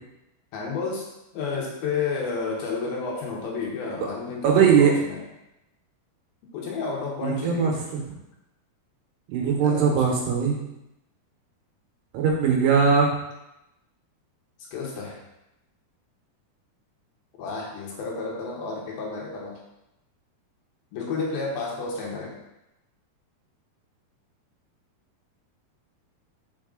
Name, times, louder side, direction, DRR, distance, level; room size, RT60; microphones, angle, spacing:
voice 1, 0.5-1.1 1.3-5.2 6.5-7.9 9.6-10.0 14.7-15.2 17.4-19.6 20.9-22.4, left 4 dB, 70° left, -2 dB, 2.6 m, -31 dB
voice 2, 4.4-4.9 7.2-7.7 9.3-10.6 12.1-13.1, right 6 dB, 80° right, 0 dB, 3.1 m, -20 dB
5.6 x 5.2 x 3.7 m, 0.90 s
omnidirectional pair, 4.8 m